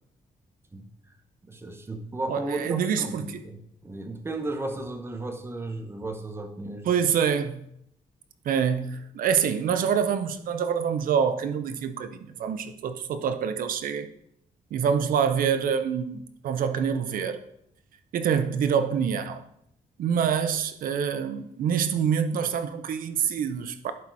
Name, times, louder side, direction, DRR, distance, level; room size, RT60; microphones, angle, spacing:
voice 1, 1.4-6.9, right 2 dB, 15° right, 0.9 m, -35 dB
voice 2, 2.3-3.4 6.8-7.6 8.4-14.1 14.7-17.4 18.1-19.5 20.0-23.9, right 7 dB, 75° right, 0.7 m, -26 dB
11.0 x 4.3 x 4.7 m
wide cardioid pair, 155°, 14 cm